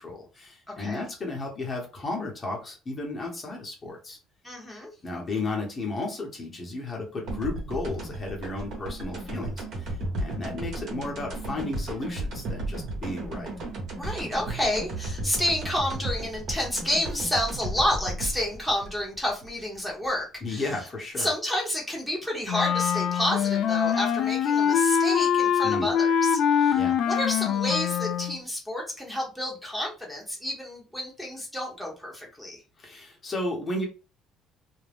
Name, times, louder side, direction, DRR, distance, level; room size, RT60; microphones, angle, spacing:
voice 1, 0.0-4.2 5.0-13.5 20.4-21.3 25.6-25.9 26.7-27.0 32.8-33.9, left 2 dB, 30° left, 0 dB, 0.9 m, -33 dB
voice 2, 4.4-4.9 13.9-20.6 21.2-32.6, left 1 dB, ahead, -1 dB, 0.9 m, -30 dB
sound 1, 7.3-20.1, right 2 dB, 60° right, 1.0 m, -34 dB
Wind instrument woodwind instrument, 22.5-28.4, left 8 dB, 60° left, 0.3 m, -24 dB
2.4 x 2.1 x 3.4 m, 0.32 s
cardioid pair, 115°, 0 cm